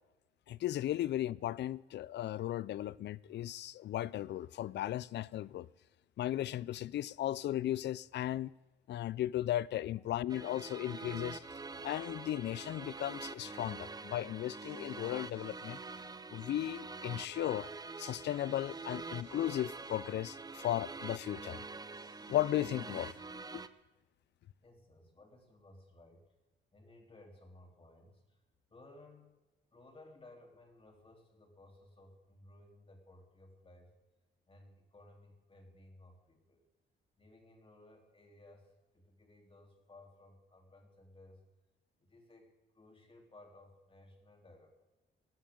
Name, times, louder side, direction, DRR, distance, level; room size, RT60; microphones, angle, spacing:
voice 1, 0.5-5.7 6.2-8.5 8.9-11.4 11.8-15.8 16.3-17.7 18.0-21.6 22.3-23.1, left 13 dB, 60° left, 0.5 m, -36 dB
sound 1, 10.3-23.7, right 3 dB, 20° right, 0.7 m, -45 dB
sound 2, 14.4-16.1 18.0-20.0 21.9-23.6 24.6-24.7, right 5 dB, 60° right, 4.3 m, -70 dB
voice 2, 24.6-26.3 26.7-28.4 28.7-29.3 29.7-33.9 34.5-36.6 37.2-41.4 42.0-44.9, left 2 dB, 25° left, 3.6 m, -59 dB
19.5 x 12.5 x 3.8 m
cardioid pair, 90°, 20 cm